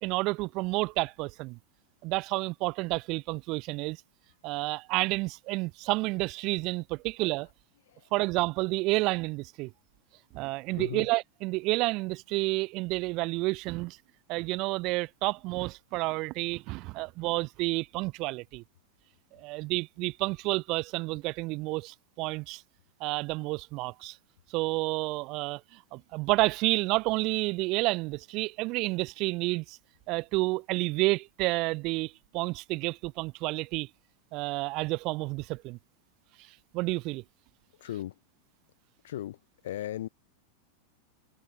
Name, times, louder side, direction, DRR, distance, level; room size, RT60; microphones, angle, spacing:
voice 1, 0.0-1.6 2.0-4.0 4.4-7.5 8.1-9.7 10.3-14.0 14.3-18.6 19.3-22.6 23.0-24.2 24.5-25.6 25.9-29.8 30.1-33.9 34.3-35.8 36.7-37.2, right 23 dB, 40° right, 0.4 m, -30 dB
voice 2, 10.8-11.1 37.8-38.2 39.0-40.1, left 13 dB, 60° left, 2.8 m, -37 dB
figure-of-eight pair, 90°, 0 cm